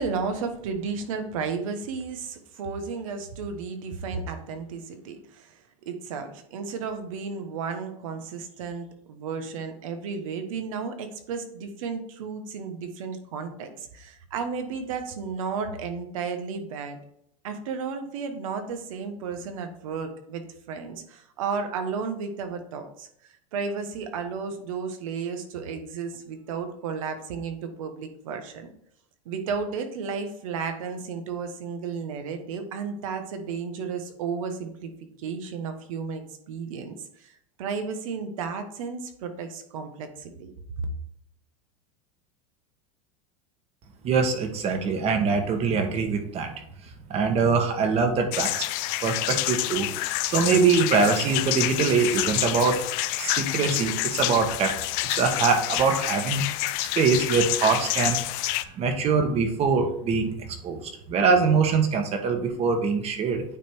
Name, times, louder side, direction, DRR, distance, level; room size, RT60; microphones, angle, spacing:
voice 1, 0.0-17.0 17.4-23.1 23.5-28.7 29.2-34.9 35.2-37.3 37.6-40.5 40.8-40.9, right 5 dB, 80° right, 7 dB, 1.2 m, -33 dB
voice 2, 44.0-46.5 47.1-48.6 49.0-49.9 50.3-52.8 53.2-54.7 55.0-56.4 56.9-58.2 58.7-60.3 60.6-63.4, right 5 dB, 35° right, 5 dB, 1.4 m, -23 dB
sound 1, 48.3-58.6, left 17 dB, 55° left, 0.5 m, -28 dB
9.0 x 3.4 x 4.5 m, 0.71 s
supercardioid pair, 125°, 17 cm